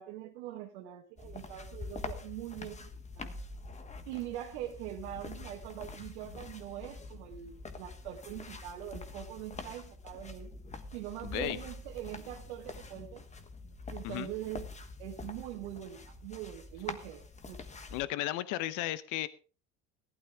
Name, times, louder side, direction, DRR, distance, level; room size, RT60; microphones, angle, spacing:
voice 1, 0.0-2.9 3.2-3.4 4.1-10.5 10.9-13.3 13.9-14.7 15.0-17.6, right 12 dB, 90° right, 0 dB, 1.4 m, -43 dB
sound 1, 1.2-18.0, left 3 dB, 20° left, 1.3 m, -45 dB
voice 2, 17.9-19.3, left 15 dB, 65° left, 16 dB, 0.8 m, -34 dB
15.0 x 12.0 x 3.5 m, 0.37 s
supercardioid pair, 110°, 32 cm